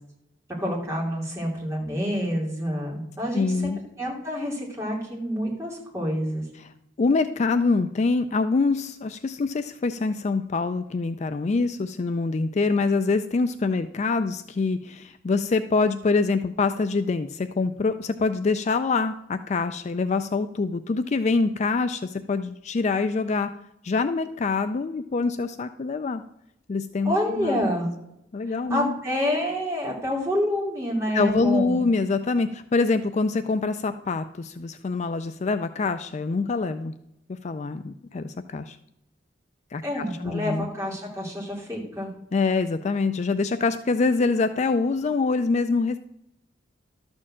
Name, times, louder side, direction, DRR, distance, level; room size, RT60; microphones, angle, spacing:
voice 1, 0.6-3.7 4.0-6.5 27.0-27.9 28.5-31.9 39.8-42.1, equal, 15° right, -3 dB, 2.8 m, -28 dB
voice 2, 3.3-3.8 6.6-6.7 7.0-23.5 23.8-26.2 26.7-27.6 28.3-28.9 31.1-36.9 37.4-38.8 39.7-40.7 42.3-46.0, left 4 dB, 35° left, 10 dB, 0.4 m, -25 dB
12.5 x 4.4 x 7.3 m, 0.83 s
head